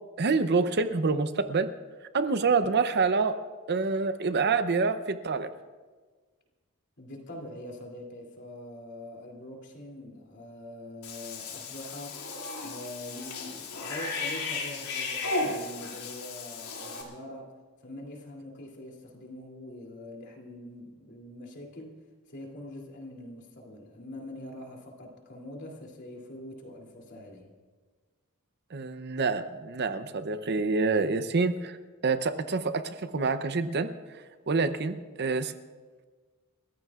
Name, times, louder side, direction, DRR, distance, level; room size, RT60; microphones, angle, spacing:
voice 1, 0.2-1.7 2.1-3.4 3.7-5.5 28.7-31.8 32.0-33.9 34.5-35.5, right 4 dB, 50° right, 10 dB, 0.7 m, -27 dB
voice 2, 7.0-12.2 12.6-22.0 22.3-27.5, left 1 dB, 55° left, 0 dB, 2.8 m, -44 dB
Cat / Bathtub (filling or washing), 11.0-17.0, left 3 dB, 85° left, 2.7 m, -35 dB
29.5 x 14.5 x 2.4 m, 1.4 s
head